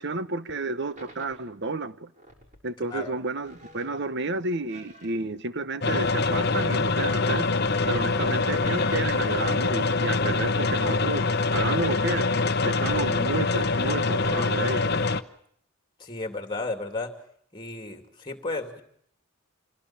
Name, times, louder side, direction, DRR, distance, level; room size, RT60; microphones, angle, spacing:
voice 1, 0.0-2.1 2.6-7.5 7.9-11.2 11.5-12.3 12.6-14.9, right 3 dB, 50° right, 1.1 m, -31 dB
sound 1, 0.9-1.4 2.1-2.7 3.4-4.1 4.7-5.5 5.9-6.6 7.3-9.2, right 1 dB, 35° right, 6.4 m, -51 dB
voice 2, 2.8-3.1 16.0-17.1 17.5-18.8, left 2 dB, 20° left, 2.7 m, -33 dB
sound 2, 5.8-15.2, left 3 dB, 50° left, 0.9 m, -24 dB
27.0 x 17.5 x 8.9 m
head